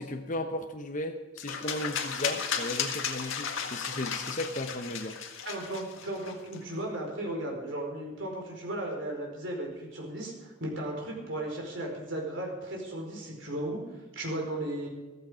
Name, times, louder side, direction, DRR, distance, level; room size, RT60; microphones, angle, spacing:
voice 1, 0.0-5.2, left 1 dB, 40° left, 4 dB, 0.9 m, -35 dB
sound 1, 1.4-6.6, left 7 dB, 75° left, 1.8 m, -34 dB
voice 2, 5.4-13.8 14.1-14.9, right 1 dB, 60° right, 0 dB, 4.7 m, -35 dB
14.5 x 14.5 x 5.0 m, 1.2 s
head